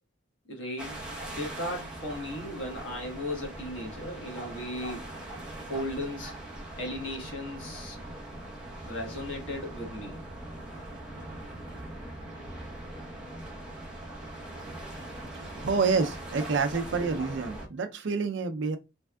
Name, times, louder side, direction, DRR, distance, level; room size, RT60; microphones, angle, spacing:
voice 1, 0.5-1.0 1.2-5.0 5.6-6.3 6.8-8.0 8.8-10.2, left 1 dB, 85° left, 1.4 m, -36 dB
sound 1, 0.8-17.7, right 1 dB, 5° right, 0.9 m, -41 dB
voice 2, 15.3-18.8, right 4 dB, 70° right, 0.5 m, -28 dB
3.4 x 3.3 x 2.2 m
head